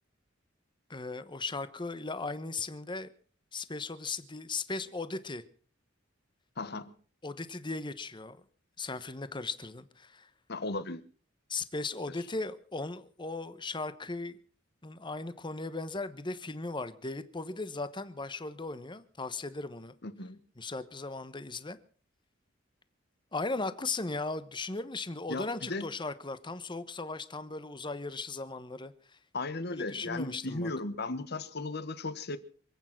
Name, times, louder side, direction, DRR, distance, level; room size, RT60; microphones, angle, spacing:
voice 1, 0.9-3.1 3.5-5.4 7.2-8.4 8.8-10.3 11.5-14.4 14.8-19.9 20.6-21.8 23.3-29.2 29.7-30.7, left 3 dB, 25° left, 1.1 m, -37 dB
voice 2, 6.6-6.9 10.5-11.0 20.0-20.4 25.3-25.9 29.3-32.4, left 2 dB, 60° left, 1.4 m, -36 dB
27.0 x 8.9 x 5.9 m
head